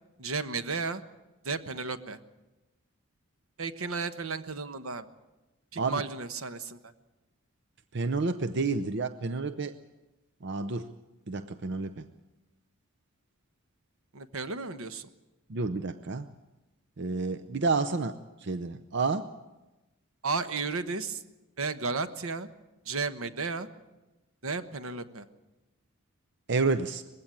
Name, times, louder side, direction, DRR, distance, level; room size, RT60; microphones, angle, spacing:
voice 1, 0.2-1.0 1.4-2.2 3.6-5.1 5.7-6.9 14.1-15.1 20.2-21.2 21.6-22.5 22.8-23.7 24.4-25.2, right 4 dB, 80° right, 11 dB, 1.2 m, -33 dB
voice 2, 7.9-9.8 10.4-10.9 11.3-12.1 15.5-16.3 17.0-19.3 26.5-27.0, right 3 dB, 55° right, 10 dB, 0.7 m, -30 dB
20.5 x 16.0 x 9.1 m, 1.1 s
head